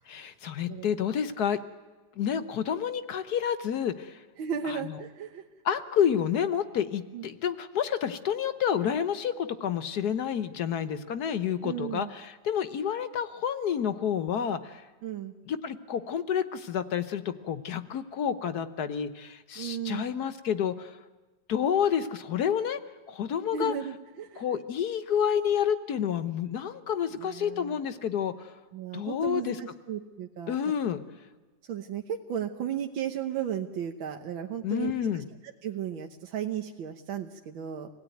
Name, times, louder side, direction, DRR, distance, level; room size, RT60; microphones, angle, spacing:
voice 1, 0.1-1.6 2.2-4.2 4.6-5.0 5.6-14.8 15.5-21.0 21.5-22.8 23.1-23.7 24.4-28.5 28.9-29.6 30.5-31.0 34.6-35.2, left 8 dB, 60° left, 11 dB, 1.4 m, -29 dB
voice 2, 4.4-5.4 7.1-7.3 11.6-12.1 15.0-15.3 19.6-20.0 23.5-24.4 27.1-27.8 28.7-30.6 31.7-34.9 35.6-37.9, right 9 dB, 90° right, 3 dB, 1.9 m, -35 dB
26.0 x 17.0 x 9.2 m, 1.3 s
omnidirectional pair, 2.1 m